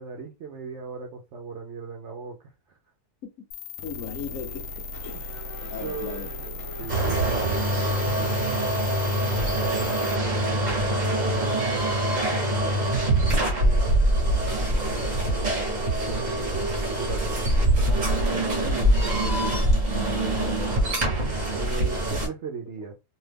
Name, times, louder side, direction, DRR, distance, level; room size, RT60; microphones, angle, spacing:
voice 1, 0.0-2.5 5.8-8.7 9.5-10.4 10.8-11.7 13.4-14.0 16.1-19.0 21.5-22.9, right 5 dB, 65° right, 0.7 m, -37 dB
sound 1, 3.5-10.2, left 4 dB, 90° left, 1.2 m, -37 dB
voice 2, 3.8-6.3 20.3-20.9, left 7 dB, 65° left, 1.0 m, -38 dB
Race car auto racing / Accelerating revving vroom, 4.5-10.0, left 2 dB, 20° left, 0.7 m, -43 dB
sound 2, 6.9-22.3, right 1 dB, 35° right, 0.8 m, -24 dB
2.7 x 2.2 x 3.3 m
omnidirectional pair, 1.7 m